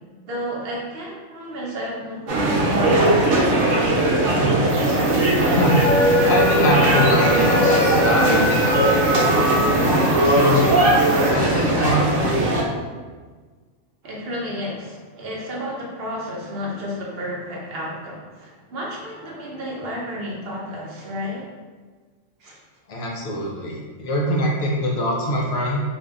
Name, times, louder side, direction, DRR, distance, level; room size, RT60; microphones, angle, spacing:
voice 1, 0.3-4.2 14.0-21.5 22.4-22.6, equal, 55° right, -4 dB, 0.8 m, -31 dB
sound 1, 2.3-12.6, right 1 dB, 75° right, 1.1 m, -19 dB
sound 2, 4.7-11.3, equal, 30° right, 0.4 m, -23 dB
voice 2, 5.5-5.8 6.3-9.8 10.1-12.4 22.9-25.8, equal, 65° left, -2 dB, 0.5 m, -24 dB
3.7 x 2.6 x 2.4 m, 1.4 s
omnidirectional pair, 1.4 m